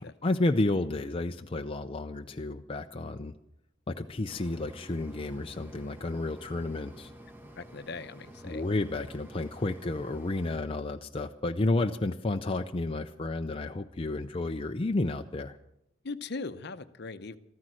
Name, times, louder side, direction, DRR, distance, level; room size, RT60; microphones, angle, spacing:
voice 1, 0.2-3.3 3.9-7.1 8.4-15.6, left 2 dB, 25° left, 5 dB, 0.5 m, -31 dB
Mechanisms, 4.3-10.6, right 1 dB, 10° right, 1.2 m, -50 dB
voice 2, 7.6-8.6 16.0-17.4, left 3 dB, 55° left, 11 dB, 0.8 m, -39 dB
14.0 x 14.0 x 6.2 m, 0.79 s
head